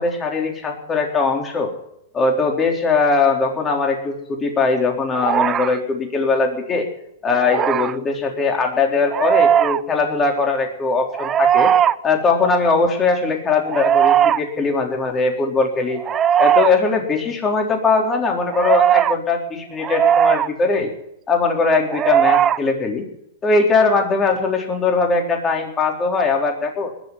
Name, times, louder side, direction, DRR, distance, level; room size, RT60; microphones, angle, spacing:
voice 1, 0.0-1.7 2.1-6.9 7.2-11.7 12.0-16.0 16.4-20.9 21.3-23.1 23.4-26.9, left 4 dB, 20° left, 2 dB, 4.1 m, -20 dB
sound 1, 5.2-5.8 7.4-7.9 9.1-9.8 11.1-11.9 13.6-14.4 16.0-16.7 18.5-19.2 19.8-20.5 21.9-22.6, right 10 dB, 25° right, 0.6 m, -17 dB
20.5 x 7.3 x 9.7 m, 0.76 s
hypercardioid pair, 120°, 0 cm